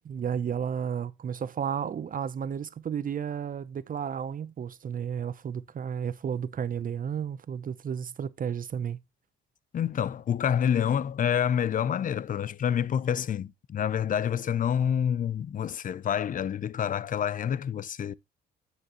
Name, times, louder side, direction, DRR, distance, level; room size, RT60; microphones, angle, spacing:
voice 1, 0.0-9.0, right 8 dB, 45° right, 0.7 m, -32 dB
voice 2, 9.7-18.1, left 8 dB, 45° left, 0.5 m, -27 dB
9.5 x 6.4 x 3.0 m
cardioid pair, 90°, 20 cm